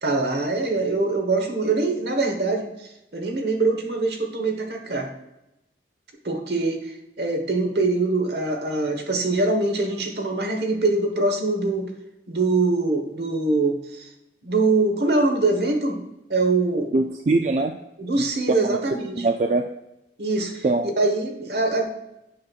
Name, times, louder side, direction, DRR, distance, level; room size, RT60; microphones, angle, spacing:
voice 1, 0.0-5.1 6.2-11.9 12.3-14.1 14.4-16.0 16.3-16.9 18.0-19.2 20.2-20.6 21.0-21.8, right 3 dB, 65° right, 3 dB, 1.3 m, -23 dB
voice 2, 16.9-17.7 18.2-18.8 19.2-19.7 20.6-20.9, right 2 dB, 40° right, 5 dB, 0.3 m, -22 dB
8.5 x 6.2 x 2.4 m, 0.89 s
head